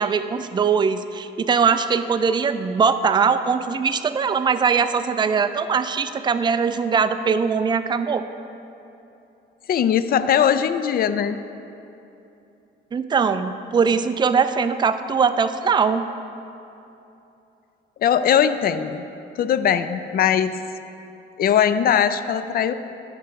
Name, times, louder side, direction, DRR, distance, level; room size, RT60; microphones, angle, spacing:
voice 1, 0.0-8.2 12.9-16.0, right 6 dB, 25° right, 10 dB, 0.4 m, -21 dB
voice 2, 9.7-11.4 18.0-19.1 19.4-20.6 21.4-22.7, left 8 dB, 50° left, 12 dB, 0.4 m, -20 dB
11.0 x 5.7 x 4.7 m, 2.8 s
cardioid pair, 90°, 20 cm